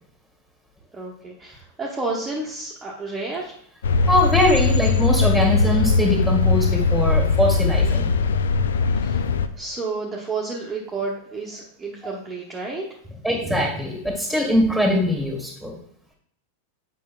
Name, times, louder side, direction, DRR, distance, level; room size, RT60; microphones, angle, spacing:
voice 1, 0.9-3.6 9.0-9.2 9.5-12.8 13.5-13.6, right 3 dB, 10° right, -5 dB, 1.0 m, -30 dB
sound 1, 3.8-9.5, left 4 dB, 65° left, 0.3 m, -20 dB
voice 2, 4.1-8.1 13.2-15.8, left 1 dB, 5° left, 0 dB, 1.7 m, -22 dB
8.3 x 5.3 x 2.3 m, 0.66 s
figure-of-eight pair, 90°, 0 cm